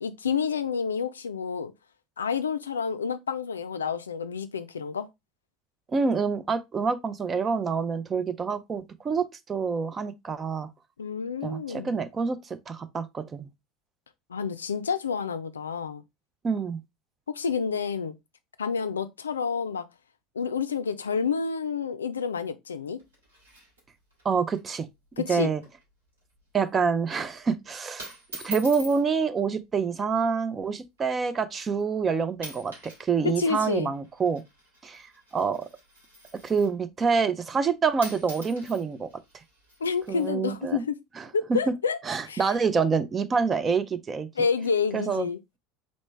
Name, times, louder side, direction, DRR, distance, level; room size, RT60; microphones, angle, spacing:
voice 1, 0.0-1.7 2.2-5.1 11.0-12.0 14.3-16.0 17.3-18.1 18.6-19.9 20.4-23.0 25.2-25.5 33.2-33.9 39.8-41.0 41.3-42.0 42.3-42.4 44.4-45.4, left 6 dB, 80° left, 0.4 m, -29 dB
voice 2, 5.9-10.7 11.4-13.5 16.4-16.8 24.2-24.9 25.3-25.6 26.5-28.1 28.4-34.4 34.8-35.7 36.4-39.1 40.1-40.8 41.2-41.3 42.1-44.3 44.9-45.3, right 5 dB, 25° right, 0.5 m, -27 dB
sound 1, 23.0-24.2 24.5-24.6 24.9-25.2 25.5-25.9 26.2-26.5 27.2-27.5 28.0-29.0 30.0-30.3 31.0-31.1 31.8-32.0 32.3-33.1 33.3-36.8 37.7-37.8 38.0-40.3, right 1 dB, 80° right, 2.3 m, -44 dB
4.1 x 3.1 x 3.3 m
figure-of-eight pair, 70°, 0 cm